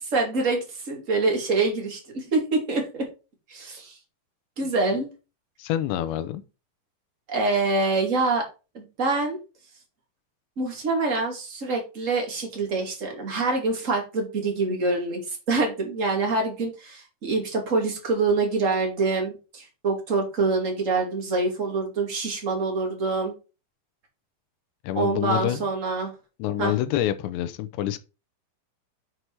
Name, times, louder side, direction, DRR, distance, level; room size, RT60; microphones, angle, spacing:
voice 1, 0.0-3.1 3.5-4.0 4.6-5.1 7.3-8.4 8.7-9.4 10.6-23.3 24.9-26.1 26.6-26.7, right 3 dB, 25° right, 1.8 m, -25 dB
voice 2, 5.6-6.4 24.8-25.6 26.4-28.0, left 12 dB, 85° left, 2.9 m, -27 dB
8.0 x 5.8 x 4.7 m
omnidirectional pair, 5.2 m